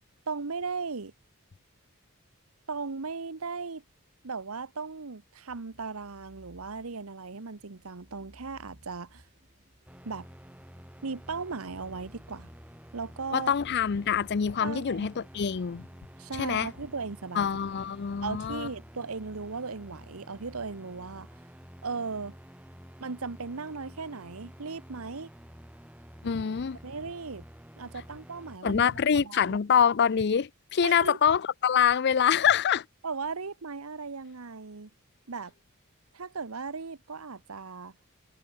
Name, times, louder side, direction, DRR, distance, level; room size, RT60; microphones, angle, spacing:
voice 1, 0.3-1.1 2.7-3.8 4.2-9.2 10.0-10.3 11.0-12.5 12.9-13.5 14.6-15.1 16.2-17.5 17.7-17.8 18.2-21.3 21.8-22.3 23.0-25.3 26.8-27.4 27.8-29.6 30.8-31.2 33.0-34.9 35.3-35.5 36.1-37.9, right 4 dB, 75° right, 1.0 m, -37 dB
sound 1, 5.5-17.3, equal, 35° right, 7.9 m, -59 dB
sound 2, 9.9-28.6, equal, 5° right, 7.9 m, -50 dB
voice 2, 13.3-15.9 16.3-16.7 17.4-18.7 26.2-26.8 28.6-32.9, left 7 dB, 50° left, 0.5 m, -25 dB
head